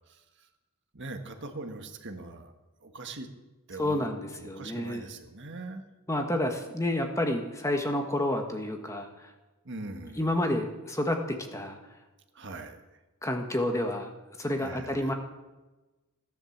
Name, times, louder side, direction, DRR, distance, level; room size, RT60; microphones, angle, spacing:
voice 1, 0.1-0.5 0.9-2.5 2.8-3.3 3.7-4.1 4.4-5.8 9.6-10.3 12.3-13.0 14.6-15.1, right 2 dB, 55° right, 5 dB, 1.6 m, -41 dB
voice 2, 3.8-5.0 6.1-9.3 10.2-11.8 13.2-14.1 14.4-15.1, left 1 dB, 15° left, 4 dB, 1.4 m, -29 dB
16.0 x 10.5 x 7.3 m, 1.1 s
head